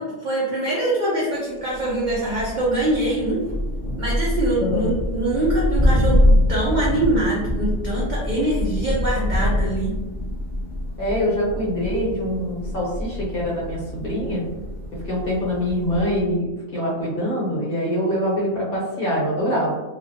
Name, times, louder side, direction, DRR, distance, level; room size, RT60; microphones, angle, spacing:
voice 1, 0.0-3.4 4.0-6.2 6.5-9.9, right 1 dB, 65° right, -5 dB, 0.4 m, -23 dB
Thunder, 1.7-16.3, left 1 dB, 10° left, 0.6 m, -25 dB
voice 2, 4.6-4.9 11.0-14.4 15.0-19.7, equal, 50° left, -6 dB, 0.9 m, -24 dB
2.4 x 2.2 x 2.6 m, 1.1 s
omnidirectional pair, 1.4 m